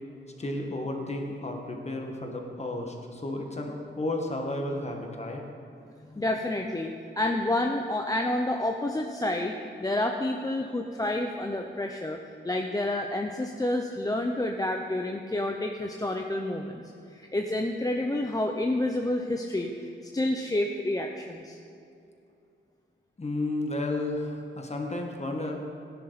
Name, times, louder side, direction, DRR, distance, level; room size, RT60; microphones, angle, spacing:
voice 1, 0.4-5.4 23.2-25.6, left 2 dB, 35° left, 2 dB, 1.6 m, -32 dB
voice 2, 6.2-9.5 9.8-16.8 17.1-21.6, left 1 dB, 20° left, 3 dB, 0.6 m, -29 dB
16.0 x 10.0 x 4.1 m, 2.5 s
wide cardioid pair, 125°, 20 cm